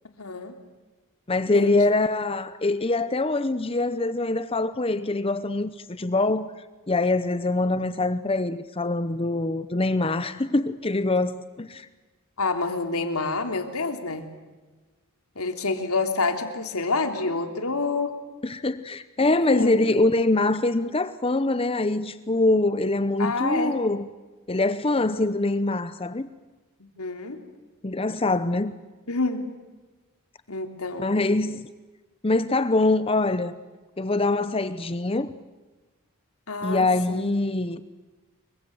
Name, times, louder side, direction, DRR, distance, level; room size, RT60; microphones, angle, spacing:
voice 1, 0.2-0.5 1.5-1.8 12.4-14.3 15.3-18.2 19.2-19.7 23.2-23.8 27.0-27.4 29.1-29.5 30.5-31.1 36.5-37.2, left 3 dB, 90° left, 3.3 m, -28 dB
voice 2, 1.3-6.5 6.9-11.9 18.4-24.1 24.5-26.3 27.8-28.7 31.0-31.7 32.2-33.6 34.0-35.3 36.6-37.8, left 2 dB, 25° left, 0.8 m, -24 dB
28.5 x 23.5 x 7.8 m
head